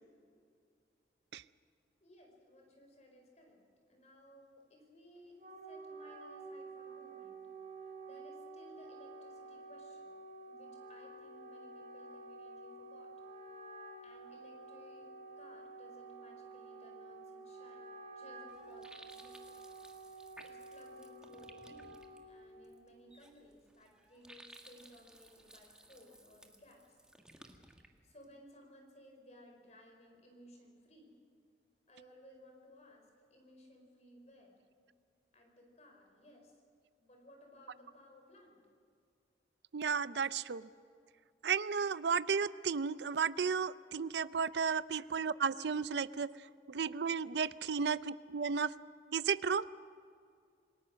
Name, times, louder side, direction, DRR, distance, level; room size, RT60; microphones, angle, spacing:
voice 1, 2.0-3.6 3.9-5.4 5.6-7.4 7.8-10.1 10.5-13.1 14.0-15.1 15.4-19.6 20.4-27.0 28.0-31.2 31.9-34.6 35.3-36.6 37.0-38.6 47.5-47.6, left 1 dB, 40° left, 2 dB, 4.9 m, -60 dB
Wind instrument woodwind instrument, 5.2-22.6, right 3 dB, 45° right, 4.5 m, -50 dB
sound 1, 18.5-28.3, right 1 dB, 5° right, 1.6 m, -59 dB
voice 2, 39.7-40.6 41.4-46.3 46.7-48.7 49.1-49.7, right 6 dB, 75° right, 16 dB, 0.5 m, -33 dB
28.0 x 19.0 x 6.4 m, 2.3 s
head